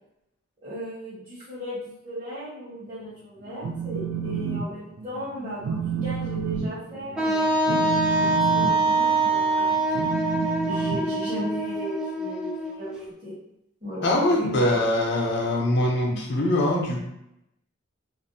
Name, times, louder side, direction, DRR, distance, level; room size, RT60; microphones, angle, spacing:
voice 1, 0.6-9.7 10.6-13.4 13.8-14.1 14.4-14.5, equal, 45° right, -12 dB, 1.1 m, -36 dB
Telephone, 3.4-4.7 5.0-5.3 5.6-11.7, right 6 dB, 85° right, 0.3 m, -30 dB
Wind instrument woodwind instrument, 7.2-12.9, right 2 dB, 5° right, 0.3 m, -24 dB
voice 2, 14.0-17.0, left 1 dB, 60° left, -2 dB, 0.6 m, -23 dB
2.5 x 2.0 x 2.6 m, 0.83 s
head